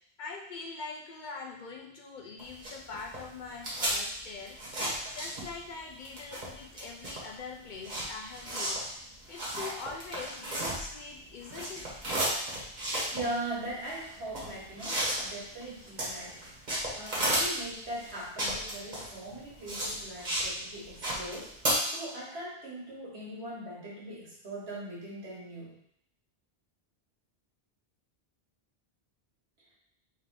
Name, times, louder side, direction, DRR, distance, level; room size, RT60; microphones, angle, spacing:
voice 1, 0.2-4.6 5.1-8.8 9.3-12.0, left 4 dB, 55° left, 1 dB, 0.6 m, -43 dB
sound 1, 2.4-5.7 6.0-11.1 11.4-20.5 20.8-21.7, right 1 dB, 45° right, 1.4 m, -33 dB
voice 2, 13.1-25.8, right 1 dB, 80° right, -5 dB, 1.7 m, -40 dB
3.5 x 3.3 x 3.6 m, 0.71 s
omnidirectional pair, 1.1 m